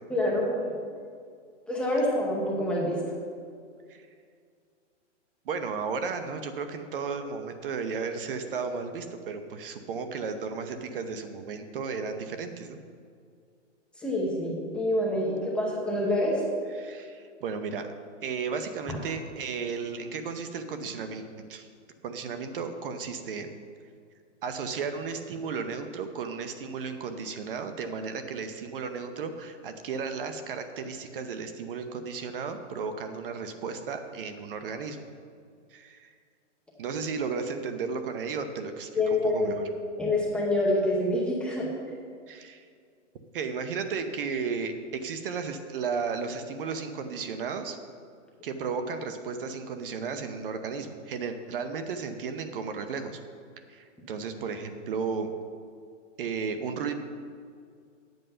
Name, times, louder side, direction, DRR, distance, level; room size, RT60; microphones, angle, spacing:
voice 1, 0.1-0.6 1.7-3.0 14.0-16.4 39.0-39.6 40.0-41.7, left 1 dB, 5° left, -4 dB, 0.8 m, -26 dB
voice 2, 5.5-12.8 16.8-17.9 18.2-21.7 22.0-23.5 24.4-35.0 35.7-36.1 36.8-39.7 42.3-42.7 43.3-47.8 48.4-53.2 53.7-55.3 56.2-56.9, right 5 dB, 45° right, 8 dB, 0.8 m, -34 dB
9.2 x 8.0 x 5.5 m, 2.2 s
hypercardioid pair, 155°, 38 cm